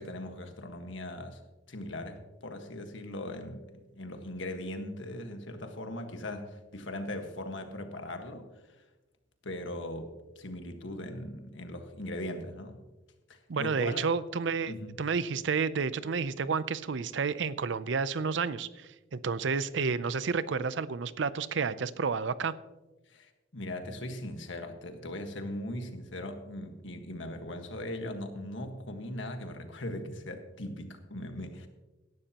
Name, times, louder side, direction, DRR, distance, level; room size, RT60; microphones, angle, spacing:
voice 1, 0.0-1.4 1.7-8.5 9.4-12.8 13.3-14.0 14.7-15.0 23.1-31.7, left 1 dB, 70° left, 6 dB, 1.5 m, -39 dB
voice 2, 13.5-22.5, right 5 dB, 65° right, 16 dB, 0.5 m, -31 dB
17.5 x 12.0 x 2.9 m, 1.1 s
head